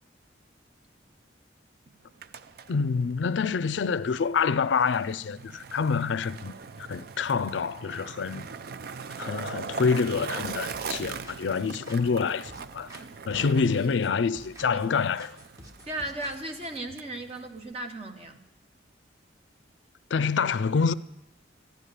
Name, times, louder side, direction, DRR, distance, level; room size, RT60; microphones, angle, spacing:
Skateboard, 2.0-17.7, right 5 dB, 55° right, 0.4 m, -41 dB
voice 1, 2.7-6.5 6.9-8.5 9.2-12.9 13.3-15.4 20.1-20.9, left 5 dB, 75° left, 0.4 m, -27 dB
sound 1, 10.4-13.0 13.3-14.9 15.2-16.8, equal, 20° right, 1.3 m, -49 dB
voice 2, 15.8-18.4, right 1 dB, 35° right, 1.1 m, -36 dB
14.0 x 10.5 x 6.6 m
head